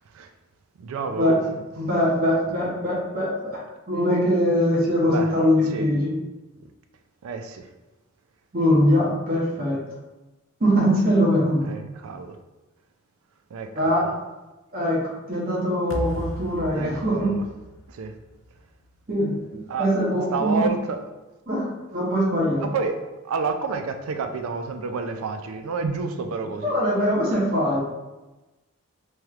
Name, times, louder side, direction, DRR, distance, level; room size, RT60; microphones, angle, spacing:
voice 1, 0.8-1.6 5.0-5.3 5.6-5.9 7.2-7.7 11.6-12.4 13.5-14.1 16.7-17.5 17.9-18.1 19.7-19.9 20.3-21.0 22.6-23.0 23.2-26.8, right 4 dB, 75° right, 7 dB, 0.4 m, -29 dB
voice 2, 1.7-3.6 3.9-6.2 8.5-9.8 10.6-11.7 13.7-14.1 14.7-15.0 15.3-17.3 19.1-20.7 21.5-21.7 21.9-22.7 26.6-27.8, equal, 40° right, -5 dB, 0.8 m, -22 dB
sound 1, 15.9-19.0, left 1 dB, 55° left, 0.4 m, -35 dB
3.1 x 3.0 x 2.4 m, 1.1 s
head